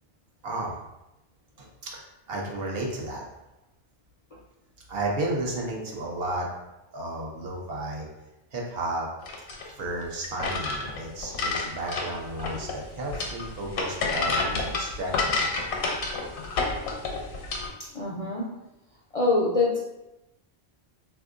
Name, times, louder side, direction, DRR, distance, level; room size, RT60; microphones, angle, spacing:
voice 1, 0.4-0.8 1.6-2.0 2.3-3.2 4.9-6.5 6.9-8.1 8.5-9.1 9.8-15.4, right 2 dB, 70° right, -2 dB, 0.9 m, -33 dB
sound 1, 9.2-17.7, left 3 dB, 80° left, 0.9 m, -30 dB
voice 2, 17.9-18.4 19.1-19.8, left 3 dB, 55° left, -4 dB, 0.4 m, -24 dB
3.4 x 2.6 x 2.4 m, 0.93 s
omnidirectional pair, 1.1 m